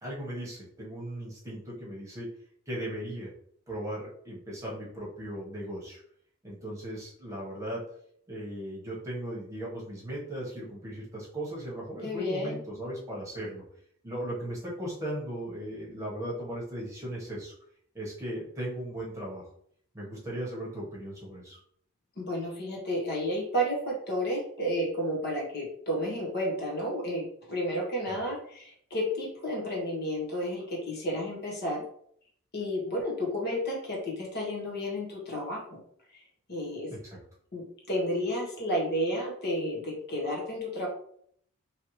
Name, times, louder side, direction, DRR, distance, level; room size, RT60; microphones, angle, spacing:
voice 1, 0.0-2.3 2.7-3.3 3.7-6.0 6.4-7.8 8.3-13.6 14.0-17.5 17.9-19.5 19.9-21.6 28.1-28.2 36.9-37.0, right 1 dB, 15° right, -5 dB, 1.3 m, -37 dB
voice 2, 12.0-12.6 22.2-31.8 32.5-35.8 36.5-36.9 37.5-40.9, equal, 50° left, -2 dB, 1.4 m, -31 dB
4.6 x 3.1 x 3.2 m, 0.65 s
head